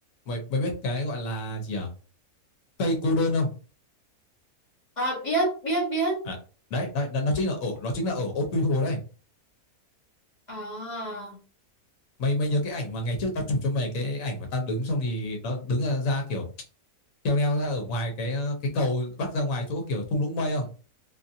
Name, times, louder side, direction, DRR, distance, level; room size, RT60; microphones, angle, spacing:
voice 1, 0.3-1.9 2.8-3.5 6.3-6.4 6.7-9.0 12.2-16.5 17.2-20.7, left 1 dB, 70° left, 2 dB, 1.2 m, -27 dB
voice 2, 5.0-6.2 10.5-11.4, right 2 dB, 35° left, -3 dB, 0.8 m, -28 dB
2.8 x 2.5 x 2.7 m, 0.36 s
omnidirectional pair, 1.5 m